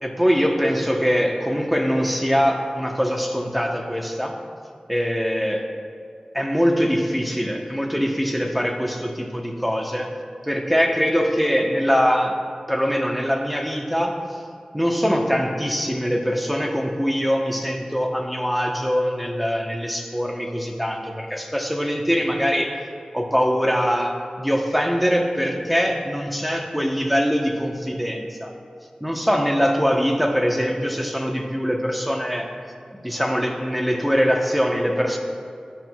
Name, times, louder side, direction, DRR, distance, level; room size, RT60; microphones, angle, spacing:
voice 1, 0.0-4.3 4.9-5.7 6.3-10.1 10.4-12.4 12.7-14.4 14.7-22.8 23.1-28.5 29.0-32.5 33.0-35.2, equal, ahead, 2 dB, 1.0 m, -22 dB
13.0 x 5.9 x 2.4 m, 2.3 s
wide cardioid pair, 40°, 2 cm